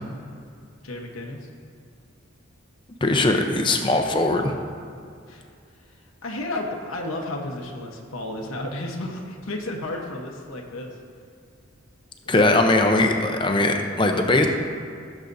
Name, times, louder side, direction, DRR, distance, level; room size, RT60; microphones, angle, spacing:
voice 1, 0.8-1.5 5.3-5.4 5.9-10.9 12.2-12.3, left 1 dB, 85° left, 0 dB, 1.1 m, -32 dB
voice 2, 3.0-4.5 12.3-14.5, left 2 dB, 25° left, 4 dB, 0.6 m, -20 dB
16.5 x 7.3 x 2.7 m, 2.3 s
head